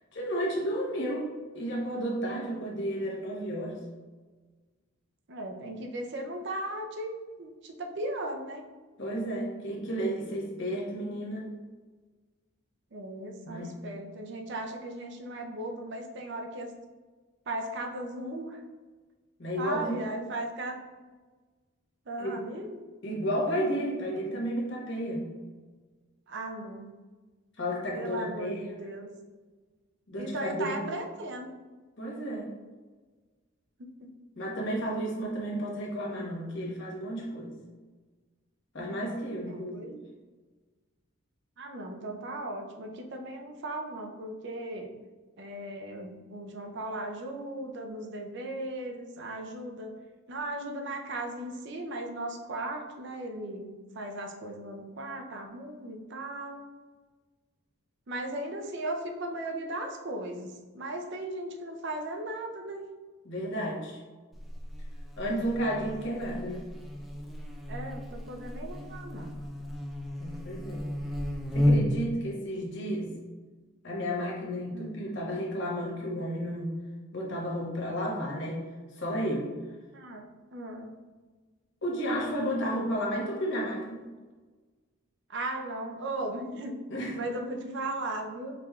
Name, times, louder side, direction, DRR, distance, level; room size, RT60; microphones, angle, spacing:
voice 1, 0.1-1.3 1.5-3.8 9.0-11.5 13.4-13.8 19.4-20.1 22.2-22.4 23.0-25.3 27.6-28.8 30.1-30.8 32.0-32.5 34.4-37.5 38.7-39.9 63.2-64.0 65.2-66.7 70.2-70.8 71.5-73.2 73.8-76.8 77.1-78.6 79.0-79.5 81.8-84.0 86.9-87.2, equal, 55° left, -3 dB, 1.0 m, -32 dB
voice 2, 5.3-8.6 12.9-16.7 17.5-18.6 19.6-20.8 22.1-22.8 26.3-26.9 27.9-29.1 30.2-31.5 33.8-34.1 39.4-40.0 41.6-44.9 45.4-49.9 50.3-56.6 58.1-62.8 67.7-69.3 74.7-74.9 79.9-80.2 80.5-80.9 85.3-86.8 87.1-88.5, right 1 dB, 55° right, 3 dB, 0.5 m, -37 dB
Buzz, 64.3-72.1, left 1 dB, ahead, 0.3 m, -32 dB
4.8 x 3.4 x 2.3 m, 1.3 s
head